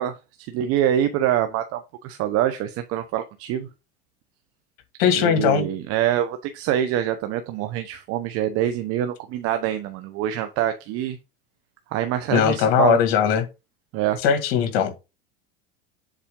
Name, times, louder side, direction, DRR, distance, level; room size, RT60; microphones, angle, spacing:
voice 1, 0.0-3.7 5.2-11.2 11.9-13.0 13.9-14.2, right 11 dB, 50° right, 0.9 m, -25 dB
voice 2, 5.0-5.7 12.3-13.5 14.2-14.9, left 7 dB, 70° left, 2.1 m, -19 dB
7.4 x 4.1 x 3.7 m
supercardioid pair, 115°, 30 cm